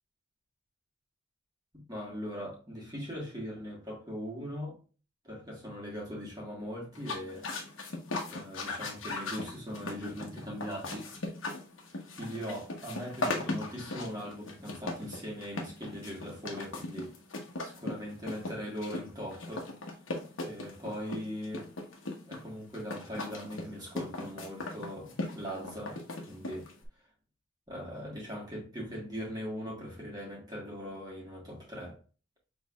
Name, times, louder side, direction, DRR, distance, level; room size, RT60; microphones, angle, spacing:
voice 1, 1.7-4.8 5.2-7.5 8.3-11.1 12.2-17.1 17.6-19.7 20.4-21.7 22.2-26.0 26.3-26.7 27.7-32.0, equal, 20° right, 1.4 m, -40 dB
sound 1, 6.9-26.8, left 2 dB, 90° left, 1.1 m, -38 dB
6.2 x 3.2 x 2.4 m
head